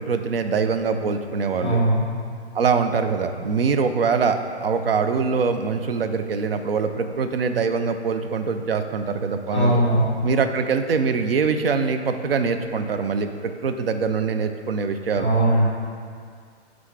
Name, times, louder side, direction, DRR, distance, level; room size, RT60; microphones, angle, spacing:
voice 1, 0.0-1.8 2.5-9.8 10.2-15.3, right 5 dB, 60° right, 8 dB, 0.5 m, -23 dB
voice 2, 1.6-2.0 9.5-10.0 15.2-15.6, right 1 dB, 15° right, -10 dB, 0.7 m, -19 dB
5.7 x 3.7 x 4.6 m, 2.1 s
hypercardioid pair, 180°, 34 cm